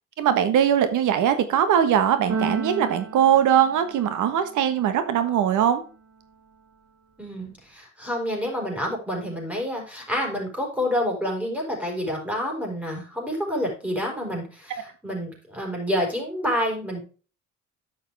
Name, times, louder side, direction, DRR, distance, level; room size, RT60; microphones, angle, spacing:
voice 1, 0.2-5.8, right 9 dB, 85° right, 10 dB, 1.4 m, -21 dB
Keyboard (musical), 2.3-4.4, right 4 dB, 55° right, 2.7 m, -32 dB
voice 2, 7.2-17.0, equal, 5° right, 0 dB, 4.8 m, -28 dB
10.0 x 6.5 x 3.5 m, 0.36 s
cardioid pair, 90°, 30 cm